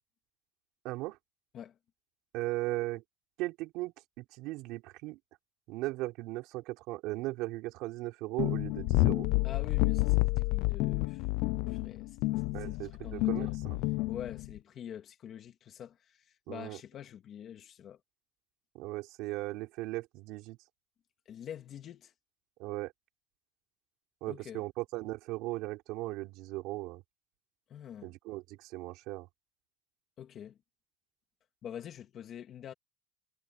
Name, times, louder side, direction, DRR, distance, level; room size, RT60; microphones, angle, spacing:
voice 1, 0.8-1.2 2.3-3.0 3.4-5.2 5.7-9.3 12.5-13.8 16.5-16.8 18.7-20.6 22.6-22.9 24.2-27.0 28.0-29.3, right 20 dB, 55° right, 4.9 m, -37 dB
sound 1, 8.4-14.6, left 22 dB, 60° left, 0.7 m, -29 dB
voice 2, 9.4-11.3 11.7-12.3 12.6-13.6 14.1-18.0 21.3-22.1 24.3-24.6 27.7-28.1 30.2-30.6 31.6-32.7, left 9 dB, 30° left, 2.5 m, -46 dB
cardioid pair, 165°, 0 cm